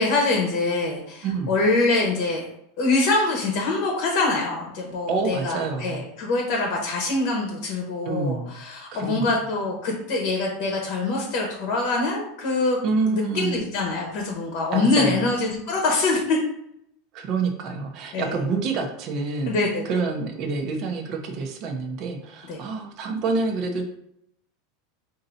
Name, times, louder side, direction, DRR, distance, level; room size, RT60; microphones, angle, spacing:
voice 1, 0.0-2.4 2.8-12.8 13.1-16.4 18.1-18.4 19.5-19.8 22.5-22.6, left 3 dB, 45° left, 0 dB, 1.0 m, -24 dB
voice 2, 1.2-1.5 5.1-6.0 8.0-8.5 8.9-9.4 12.8-13.7 14.7-15.3 17.1-19.6 19.8-23.8, right 4 dB, 35° right, 2 dB, 0.7 m, -27 dB
4.5 x 2.7 x 3.9 m, 0.76 s
supercardioid pair, 175°, 0 cm